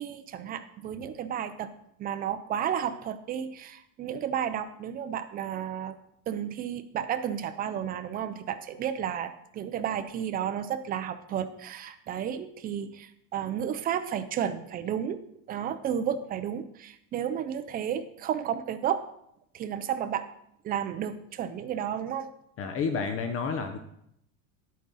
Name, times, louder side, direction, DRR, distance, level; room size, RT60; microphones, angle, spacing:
voice 1, 0.0-1.7 2.0-6.0 6.3-19.0 19.5-20.3 20.6-22.3, right 9 dB, 20° right, 11 dB, 0.4 m, -32 dB
voice 2, 22.6-23.8, left 5 dB, 30° left, 7 dB, 0.7 m, -30 dB
10.5 x 8.4 x 4.0 m, 0.76 s
supercardioid pair, 150°, 44 cm